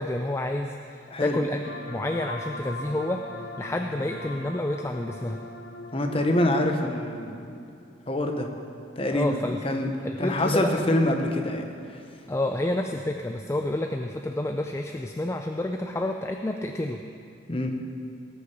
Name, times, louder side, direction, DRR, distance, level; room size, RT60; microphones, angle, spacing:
voice 1, 0.0-5.4 9.1-9.6 10.0-10.8 12.3-17.0, left 1 dB, 15° left, 5 dB, 0.4 m, -29 dB
sound 1, 1.6-7.0, left 2 dB, 80° left, 0.9 m, -40 dB
voice 2, 5.9-7.4 8.1-8.5 9.0-9.9 10.2-11.6 17.5-17.7, left 1 dB, 30° left, 4 dB, 1.0 m, -25 dB
19.0 x 6.6 x 5.9 m, 2.4 s
head